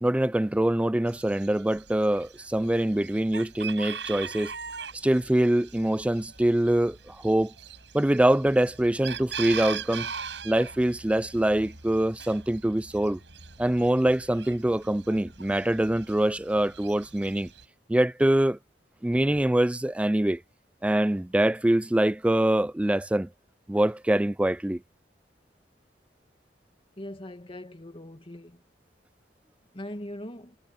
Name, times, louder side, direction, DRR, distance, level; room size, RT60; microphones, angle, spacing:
voice 1, 0.0-4.5 5.0-7.5 7.9-10.1 10.4-13.2 13.6-17.5 17.9-18.6 19.0-20.4 20.8-23.3 23.7-24.8, right 1 dB, 5° right, 0.3 m, -24 dB
Chicken rooster, 1.1-17.6, right 6 dB, 85° right, 7.3 m, -41 dB
voice 2, 27.0-28.6 29.7-30.6, left 1 dB, 30° left, 2.2 m, -40 dB
head